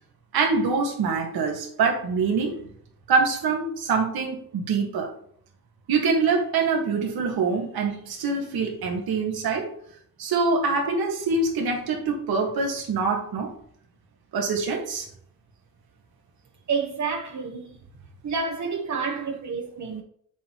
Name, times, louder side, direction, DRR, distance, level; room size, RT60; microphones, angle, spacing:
voice 1, 0.3-2.6 3.1-5.1 5.9-9.7 10.2-13.5 14.3-15.1, right 4 dB, 90° right, 1.9 m, -24 dB
voice 2, 16.7-17.8 18.2-20.0, right 5 dB, 50° right, 1.1 m, -29 dB
7.6 x 6.9 x 3.0 m
cardioid pair, 120°, 36 cm